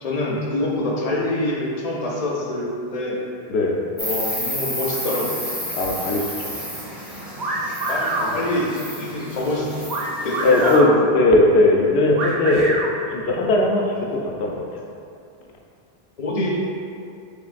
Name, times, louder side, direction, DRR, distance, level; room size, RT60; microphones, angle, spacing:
voice 1, 0.0-3.2 4.0-5.5 7.9-8.7 9.0-9.7 10.2-10.9 16.2-16.5, left 1 dB, 50° left, -3 dB, 0.5 m, -25 dB
Insect, 4.0-10.8, equal, ahead, 0.4 m, -31 dB
voice 2, 5.7-6.6 8.2-8.3 10.4-10.9 11.1-12.8 13.1-14.6, left 2 dB, 90° left, 0 dB, 0.8 m, -19 dB
sound 1, 7.4-8.3 9.9-10.9 12.2-12.9, right 2 dB, 50° right, 0.7 m, -25 dB
3.8 x 3.6 x 2.4 m, 2.6 s
omnidirectional pair, 1.0 m